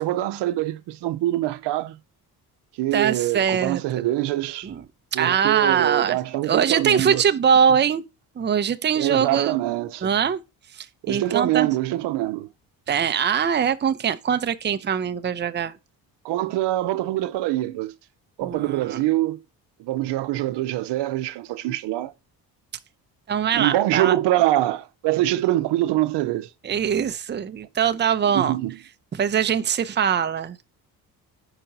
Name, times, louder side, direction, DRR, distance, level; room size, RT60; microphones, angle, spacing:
voice 1, 0.0-2.0 2.8-4.7 5.1-7.2 9.0-10.1 11.0-12.5 16.2-17.9 18.4-19.4 19.8-22.1 23.5-26.5 28.3-28.8, right 15 dB, 80° right, 0.7 m, -24 dB
voice 2, 2.9-3.8 4.6-4.8 5.1-6.2 6.4-8.0 8.4-9.6 10.0-10.4 10.7-11.7 12.9-15.8 18.4-19.0 23.3-24.2 26.6-28.6 29.1-30.6, right 8 dB, 25° right, 0.6 m, -22 dB
4.9 x 4.5 x 5.2 m
cardioid pair, 80°, 41 cm